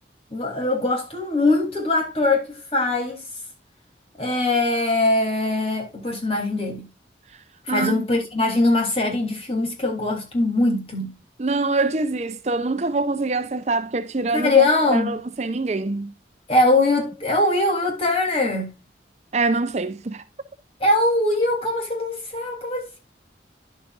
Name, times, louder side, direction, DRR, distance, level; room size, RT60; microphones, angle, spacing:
voice 1, 0.3-3.2 4.2-6.9 7.6-11.1 14.3-15.1 16.5-18.7 20.8-23.0, left 2 dB, 35° left, 3.1 m, -21 dB
voice 2, 7.7-8.0 11.4-16.1 19.3-20.2, right 3 dB, 40° right, 0.6 m, -24 dB
11.0 x 7.4 x 2.4 m
head